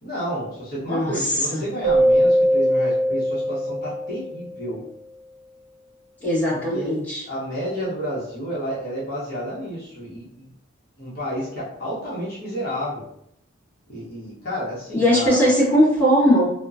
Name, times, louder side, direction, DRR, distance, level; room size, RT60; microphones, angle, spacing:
voice 1, 0.0-4.8 6.7-7.0 7.3-10.5 11.0-13.0 13.9-15.5, equal, 50° left, -8 dB, 1.0 m, -30 dB
voice 2, 0.9-1.6 6.2-7.2 14.9-16.5, equal, 10° left, -11 dB, 1.4 m, -19 dB
Keyboard (musical), 1.8-4.6, equal, 80° right, 0.5 m, -20 dB
2.9 x 2.2 x 2.4 m, 0.74 s
head